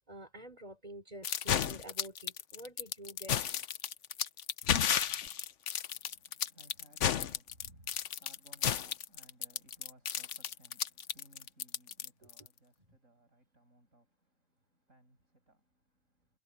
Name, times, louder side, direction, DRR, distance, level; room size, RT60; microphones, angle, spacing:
voice 1, 0.0-3.6 12.2-12.3, right 1 dB, 30° right, 4.2 m, -49 dB
sound 1, 1.2-12.5, left 9 dB, 65° left, 1.1 m, -33 dB
voice 2, 5.9-16.4, right 1 dB, 75° right, 7.6 m, -63 dB
omnidirectional pair, 1.4 m